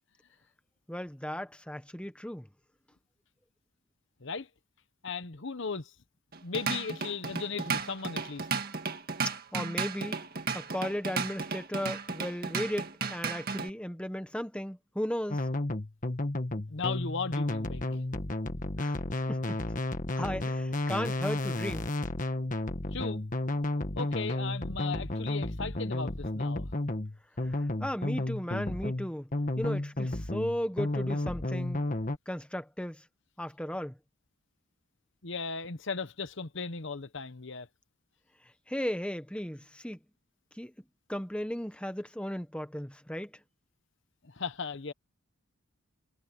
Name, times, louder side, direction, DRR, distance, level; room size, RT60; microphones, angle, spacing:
voice 1, 0.9-2.5 9.5-10.2 10.5-15.4 18.8-19.0 19.3-19.6 20.1-21.9 27.4-27.5 27.8-29.3 29.6-31.8 32.3-33.0 33.4-33.9 38.7-40.0 40.6-40.7 41.1-43.3, equal, 5° left, 1.2 m, -35 dB
voice 2, 5.0-5.9 6.4-8.5 16.7-18.0 22.9-23.2 24.0-26.7 35.2-37.7 44.2-44.9, left 4 dB, 60° left, 1.0 m, -36 dB
Drum kit / Drum, 6.3-13.7, right 5 dB, 45° right, 1.9 m, -34 dB
sound 1, 15.3-32.2, left 1 dB, 35° left, 1.5 m, -32 dB
head